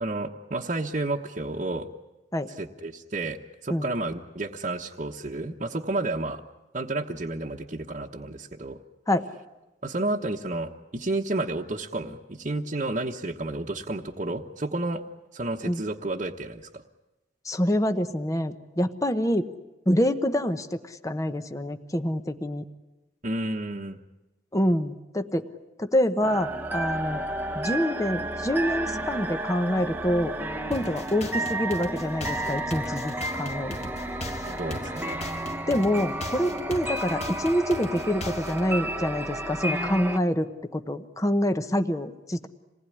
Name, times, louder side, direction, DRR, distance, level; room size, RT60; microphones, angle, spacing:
voice 1, 0.0-1.9 2.6-3.4 3.6-6.4 6.7-8.8 9.8-15.0 15.3-16.8 23.2-24.0 34.6-35.3, right 2 dB, 45° right, -2 dB, 1.2 m, -31 dB
voice 2, 17.4-19.5 19.9-22.6 24.5-25.5 25.8-27.2 27.5-30.4 30.7-33.9 35.7-42.5, equal, 20° left, 8 dB, 1.0 m, -26 dB
sound 1, 26.2-40.2, right 1 dB, 10° right, 1.0 m, -32 dB
sound 2, 30.7-38.7, left 1 dB, 40° left, 1.8 m, -39 dB
27.0 x 20.0 x 10.0 m, 1.0 s
head